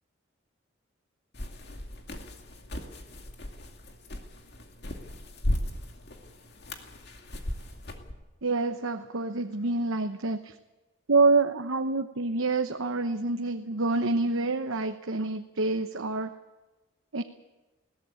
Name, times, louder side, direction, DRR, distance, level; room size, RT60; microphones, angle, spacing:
sound 1, 1.3-8.1, left 1 dB, 55° left, 2.4 m, -36 dB
voice 1, 8.4-10.4 11.1-16.3 17.1-17.2, right 3 dB, 85° right, 6 dB, 1.0 m, -27 dB
21.0 x 17.0 x 8.4 m, 1.1 s
head